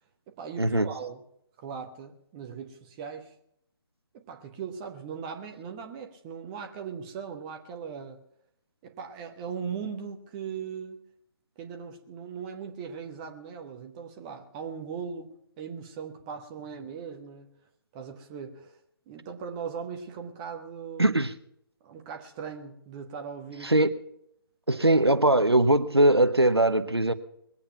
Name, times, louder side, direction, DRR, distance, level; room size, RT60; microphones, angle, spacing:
voice 1, 0.4-1.2 1.6-3.3 4.1-8.2 8.8-11.0 11.6-17.5 17.9-18.8 19.1-21.1 21.8-23.7, right 6 dB, 20° right, 4 dB, 1.2 m, -39 dB
voice 2, 21.0-21.3 23.6-23.9 24.7-27.1, right 1 dB, 85° right, 10 dB, 1.1 m, -21 dB
21.5 x 8.6 x 5.8 m, 0.74 s
figure-of-eight pair, 145°, 13 cm